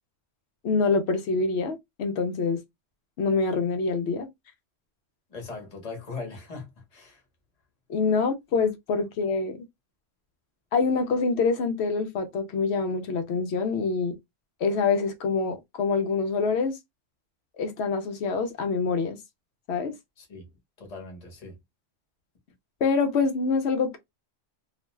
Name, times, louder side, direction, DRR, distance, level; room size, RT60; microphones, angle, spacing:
voice 1, 0.6-2.6 3.2-4.3 7.9-9.6 10.7-14.2 14.6-16.8 17.6-19.2 19.7-19.9 22.8-24.0, left 4 dB, 65° left, 0.8 m, -25 dB
voice 2, 5.3-7.2 20.2-21.6, left 3 dB, 35° left, 1.0 m, -40 dB
2.5 x 2.2 x 3.1 m
omnidirectional pair, 1.3 m